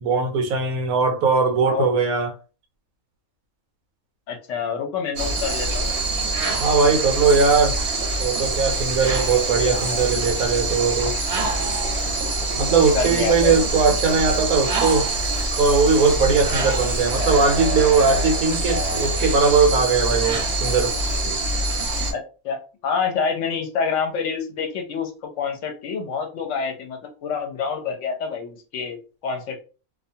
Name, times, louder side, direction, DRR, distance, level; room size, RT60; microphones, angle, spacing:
voice 1, 0.0-2.3 6.6-7.8 8.2-11.2 12.6-15.1 15.6-20.9, right 4 dB, 75° right, 1.0 m, -19 dB
voice 2, 4.3-5.9 9.7-10.0 12.9-13.7 22.1-22.6 22.8-25.1 25.4-29.6, left 6 dB, 65° left, 0.9 m, -27 dB
sound 1, 5.2-22.1, right 2 dB, 55° right, 0.8 m, -24 dB
2.4 x 2.2 x 2.7 m
omnidirectional pair, 1.5 m